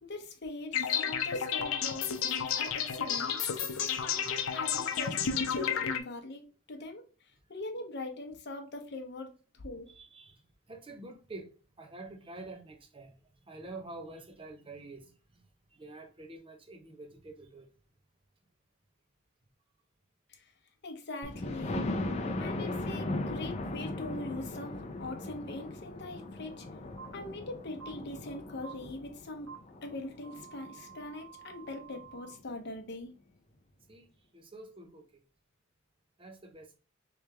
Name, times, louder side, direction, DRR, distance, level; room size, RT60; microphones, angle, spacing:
voice 1, 0.0-3.4 3.8-6.4 6.7-7.0 7.5-9.9 20.3-20.4 20.8-21.8 22.4-24.7 25.0-26.7 27.1-29.5 29.8-33.2, left 2 dB, 55° left, 0.8 m, -42 dB
sound 1, 0.7-6.0, left 7 dB, 85° left, 0.6 m, -31 dB
voice 2, 9.9-10.4 10.7-11.5 11.8-13.1 13.5-15.1 15.8-17.7 33.9-34.1 34.3-35.0 36.2-36.8, right 2 dB, 25° right, 0.7 m, -47 dB
Thunder, 21.2-31.0 31.5-31.6 32.0-32.1 32.4-32.5, left 2 dB, 30° left, 0.5 m, -38 dB
sound 2, 27.0-27.1 27.8-27.9 28.6-28.7 29.5-29.6 30.2-32.3, right 8 dB, 85° right, 1.6 m, -49 dB
3.3 x 3.2 x 3.3 m
head